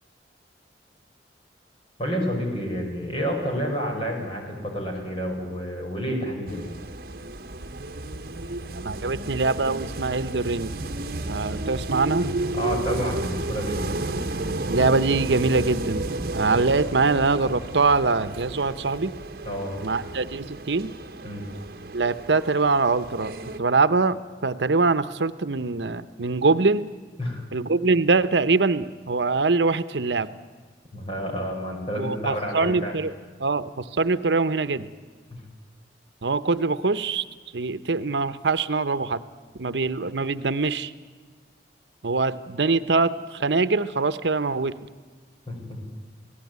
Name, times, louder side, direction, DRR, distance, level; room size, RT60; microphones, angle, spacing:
voice 1, 2.0-6.8 12.5-14.0 19.5-19.8 21.2-21.5 27.2-27.4 30.9-33.0 35.3-35.4 45.5-45.8, equal, 30° left, 1 dB, 5.8 m, -29 dB
sound 1, 6.5-23.6, right 2 dB, 55° right, 1.2 m, -32 dB
voice 2, 8.8-10.7 11.3-12.3 14.7-16.1 16.3-19.1 19.8-20.9 21.9-26.9 27.5-30.3 32.0-33.1 33.4-34.9 36.2-37.2 37.5-39.2 39.6-40.9 42.0-44.8, right 3 dB, 80° right, 13 dB, 0.9 m, -23 dB
27.5 x 18.0 x 9.5 m, 1.5 s
head